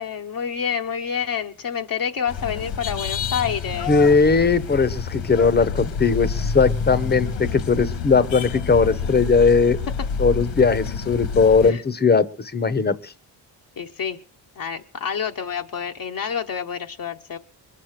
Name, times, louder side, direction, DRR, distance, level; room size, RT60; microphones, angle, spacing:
voice 1, 0.0-3.9 10.0-10.1 11.6-11.8 13.8-14.2 14.6-17.4, left 7 dB, 45° left, 3 dB, 0.9 m, -28 dB
sound 1, 2.3-11.7, left 6 dB, 75° left, 1.8 m, -28 dB
voice 2, 3.9-9.8 10.2-13.1, left 4 dB, 20° left, 14 dB, 0.9 m, -19 dB
22.0 x 7.6 x 6.6 m, 0.41 s
cardioid pair, 120°, 45 cm